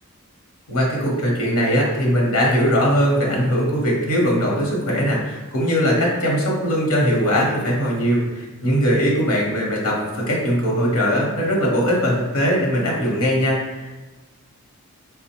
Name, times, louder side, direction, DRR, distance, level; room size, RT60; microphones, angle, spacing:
voice 1, 0.7-14.0, equal, 80° left, -3 dB, 1.0 m, -20 dB
3.7 x 2.1 x 4.3 m, 1.2 s
head